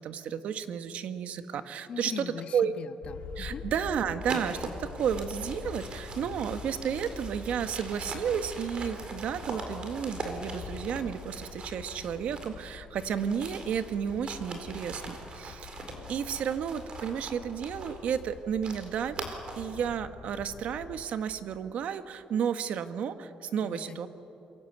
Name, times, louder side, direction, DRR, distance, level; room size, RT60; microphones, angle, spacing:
voice 1, 0.0-2.7 3.4-15.7 16.1-19.2 19.6-24.1, right 8 dB, 65° right, 10 dB, 1.3 m, -32 dB
voice 2, 1.9-3.6 23.6-24.1, left 7 dB, 50° left, 10 dB, 1.2 m, -41 dB
sound 1, 3.0-21.0, left 5 dB, 85° left, 3.1 m, -45 dB
sound 2, 4.2-12.7 13.0-19.8, right 3 dB, 40° right, 4.2 m, -42 dB
27.5 x 23.0 x 8.1 m, 3.0 s
cardioid pair, 140°, 2 cm